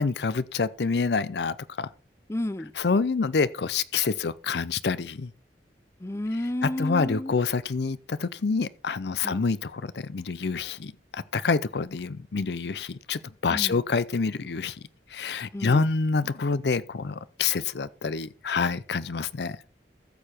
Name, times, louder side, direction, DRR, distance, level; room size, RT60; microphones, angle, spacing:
voice 1, 0.0-1.9 2.8-5.3 6.6-14.8 15.1-19.6, left 4 dB, 65° left, 0.5 m, -27 dB
voice 2, 2.3-2.7 6.0-7.3 9.2-9.4 13.5-13.8 15.5-15.8, left 1 dB, 15° left, 0.5 m, -31 dB
14.5 x 6.8 x 4.3 m
head